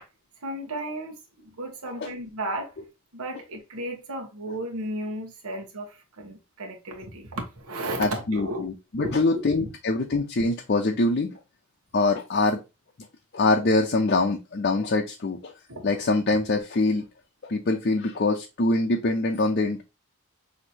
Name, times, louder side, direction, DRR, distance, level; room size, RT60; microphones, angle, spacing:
voice 1, 0.4-2.7 3.1-8.7 9.0-9.7 15.7-15.9, right 1 dB, 85° right, 1.1 m, -34 dB
voice 2, 8.0-11.3 11.9-12.6 13.3-15.5 15.8-17.0 17.5-19.8, left 2 dB, 45° left, 0.5 m, -24 dB
6.1 x 2.8 x 2.8 m
head